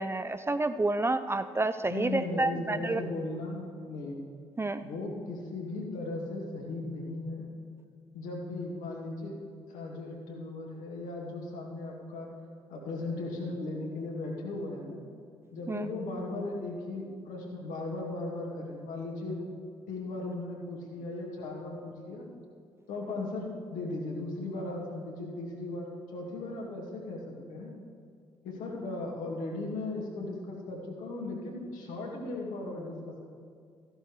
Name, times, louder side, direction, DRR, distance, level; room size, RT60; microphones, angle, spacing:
voice 1, 0.0-3.0 4.6-4.9 15.7-15.9, right 2 dB, 15° right, 11 dB, 0.4 m, -29 dB
voice 2, 1.9-4.2 4.8-7.5 8.1-9.4 9.7-12.3 12.7-15.0 15.5-19.4 19.9-22.3 22.9-27.7 28.4-33.3, left 2 dB, 65° left, -1 dB, 2.0 m, -37 dB
14.0 x 11.0 x 3.2 m, 2.2 s
figure-of-eight pair, 45°, 14 cm